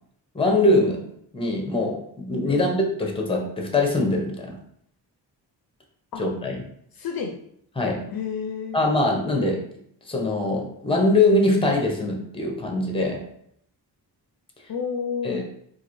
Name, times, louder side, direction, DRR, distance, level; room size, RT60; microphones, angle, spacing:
voice 1, 0.3-1.1 1.3-4.6 6.2-6.6 7.8-8.0 8.7-9.6 10.1-13.2 15.2-15.4, left 2 dB, 15° left, 1 dB, 0.7 m, -22 dB
voice 2, 7.0-7.4 8.1-8.8 14.7-15.4, left 6 dB, 60° left, 3 dB, 0.5 m, -30 dB
3.9 x 2.5 x 3.0 m, 0.69 s
wide cardioid pair, 105°, 42 cm